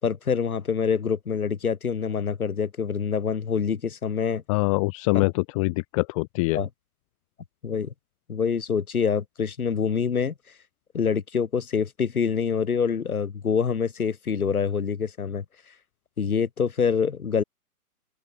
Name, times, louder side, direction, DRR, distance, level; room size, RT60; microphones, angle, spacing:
voice 1, 0.0-4.4 6.5-6.7 7.6-7.9 8.3-10.3 10.9-15.4 16.2-17.4, left 6 dB, 65° left, 5.1 m, -26 dB
voice 2, 4.5-6.6, left 25 dB, 20° left, 1.1 m, -24 dB
open air
figure-of-eight pair, 135°, 46 cm